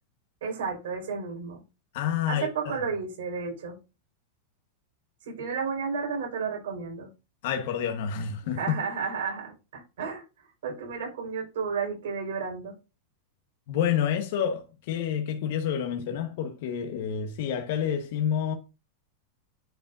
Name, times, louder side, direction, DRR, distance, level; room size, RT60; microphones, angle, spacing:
voice 1, 0.4-1.6 2.3-3.8 5.2-7.1 8.4-12.8, right 5 dB, 80° right, 4.4 m, -32 dB
voice 2, 1.9-2.7 7.4-8.6 13.7-18.5, left 8 dB, 65° left, 1.1 m, -29 dB
10.5 x 5.0 x 2.6 m
supercardioid pair, 140°, 0 cm